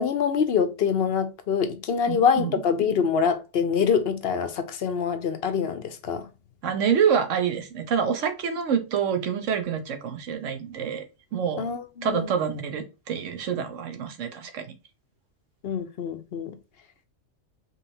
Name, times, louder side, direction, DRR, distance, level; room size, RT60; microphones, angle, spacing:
voice 1, 0.0-6.3 11.6-12.3 15.6-16.6, left 6 dB, 55° left, 0.8 m, -25 dB
voice 2, 2.1-2.6 6.6-11.0 11.3-11.7 12.0-14.7, right 7 dB, 65° right, 1.2 m, -27 dB
5.4 x 3.2 x 2.8 m
omnidirectional pair, 1.4 m